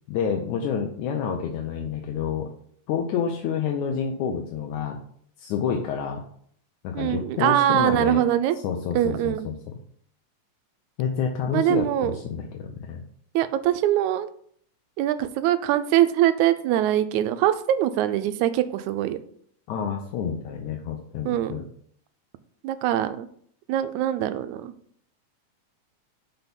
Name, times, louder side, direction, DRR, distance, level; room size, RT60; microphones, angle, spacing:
voice 1, 0.1-2.5 2.9-5.0 5.4-6.2 6.8-8.2 8.6-9.7 11.0-13.0 19.7-21.6, left 7 dB, 80° left, 2 dB, 2.2 m, -28 dB
voice 2, 6.9-8.6 9.0-9.5 11.5-12.2 13.4-14.3 15.0-19.2 21.2-21.6 22.6-23.3 23.7-24.7, right 12 dB, 85° right, 11 dB, 2.0 m, -23 dB
6.0 x 5.7 x 5.2 m, 0.63 s
omnidirectional pair, 3.4 m